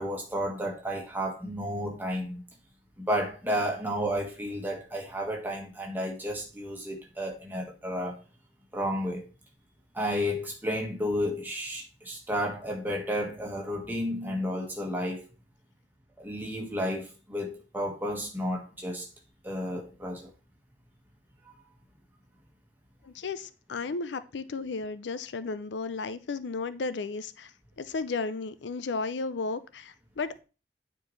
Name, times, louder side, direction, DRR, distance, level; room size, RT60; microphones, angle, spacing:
voice 1, 0.0-2.4 3.0-8.2 8.7-9.3 9.9-15.3 16.2-19.1 19.4-20.3, equal, 10° right, 1.6 m, -32 dB
voice 2, 23.0-27.5 27.8-30.4, left 4 dB, 90° left, 0.5 m, -34 dB
9.1 x 4.6 x 3.2 m
head